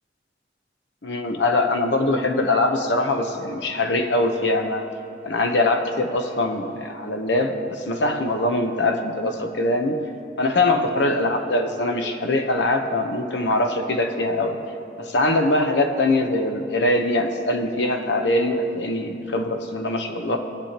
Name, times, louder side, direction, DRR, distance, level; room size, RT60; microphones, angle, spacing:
voice 1, 1.0-4.8 5.2-10.1 10.4-14.6 15.0-20.4, left 2 dB, 85° left, 5 dB, 0.9 m, -22 dB
18.5 x 8.2 x 2.9 m, 2.7 s
head